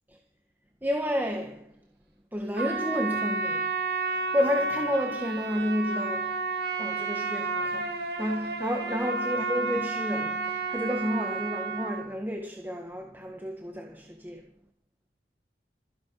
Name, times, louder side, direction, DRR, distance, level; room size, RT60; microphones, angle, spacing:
voice 1, 0.8-1.7 2.3-3.7 4.1-6.4 6.8-14.5, equal, 10° right, 1.8 m, -31 dB
Trumpet, 2.5-12.0, right 3 dB, 65° right, 5.7 m, -31 dB
26.5 x 11.0 x 9.4 m
head